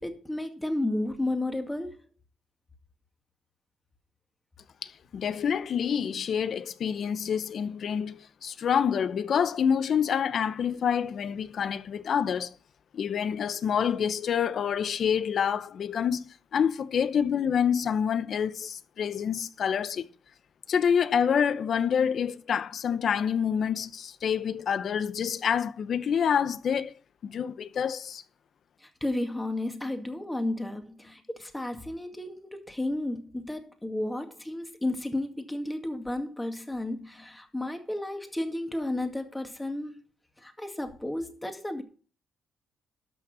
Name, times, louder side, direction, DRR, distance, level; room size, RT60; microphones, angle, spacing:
voice 1, 0.0-2.0 28.8-40.0 40.4-41.8, left 1 dB, 10° left, 2.1 m, -32 dB
voice 2, 4.8-12.5 12.9-16.2 16.5-20.0 20.7-26.9 27.2-28.2, left 7 dB, 60° left, 0.8 m, -27 dB
12.5 x 6.1 x 6.2 m
cardioid pair, 90°, 0 cm